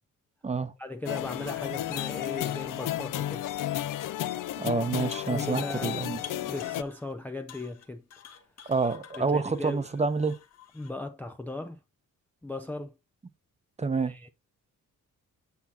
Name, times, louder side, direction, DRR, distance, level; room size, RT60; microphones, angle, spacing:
voice 1, 0.8-3.4 5.3-8.0 9.2-9.9 10.7-11.8 12.4-12.9 14.1-14.3, left 2 dB, 5° left, 0.4 m, -37 dB
sound 1, 1.1-6.8, left 13 dB, 70° left, 0.5 m, -33 dB
voice 2, 4.6-6.2 8.7-10.3 13.8-14.1, right 4 dB, 20° right, 0.8 m, -28 dB
sound 2, 5.1-5.9 6.2-7.1 7.5-10.9, left 8 dB, 50° left, 1.2 m, -49 dB
8.3 x 7.2 x 2.8 m
wide cardioid pair, 155°, 33 cm